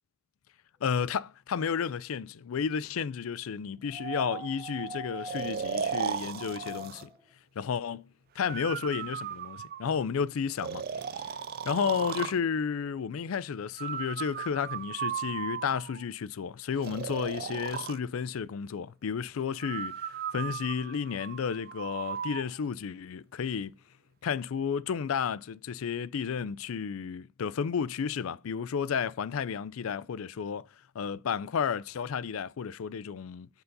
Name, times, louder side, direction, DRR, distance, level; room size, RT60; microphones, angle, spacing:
voice 1, 0.8-7.1 7.6-10.8 11.2-11.3 11.7-23.7 24.2-30.7 30.9-33.5, left 6 dB, 85° left, 0.4 m, -32 dB
sound 1, 3.9-7.2 8.6-8.7, right 3 dB, 15° right, 1.9 m, -41 dB
Breathing, 5.3-7.1 8.4-10.1 10.6-12.4 13.8-16.0 16.8-18.0 19.6-22.5, right 8 dB, 50° right, 0.4 m, -36 dB
7.9 x 4.0 x 3.9 m
head